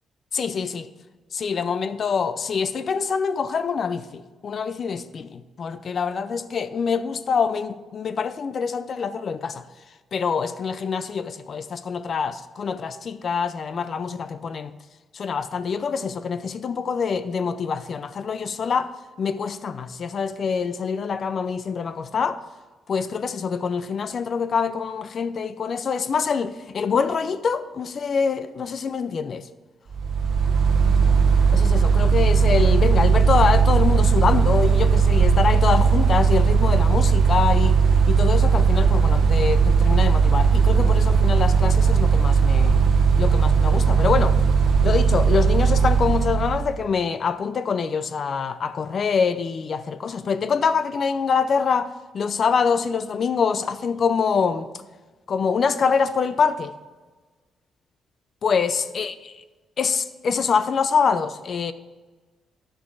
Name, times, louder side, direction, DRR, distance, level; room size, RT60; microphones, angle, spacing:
voice 1, 0.3-0.9 1.3-9.6 10.1-14.7 15.1-18.9 19.2-22.4 22.9-29.5 31.5-37.8 38.1-42.8 43.2-44.4 44.8-54.7 55.3-56.7 58.4-59.4 59.8-61.7, left 6 dB, 45° left, 0.5 m, -25 dB
Mechanical fan, 29.9-46.8, right 5 dB, 60° right, 1.0 m, -18 dB
10.5 x 6.3 x 4.7 m
cardioid pair, 140°, 0 cm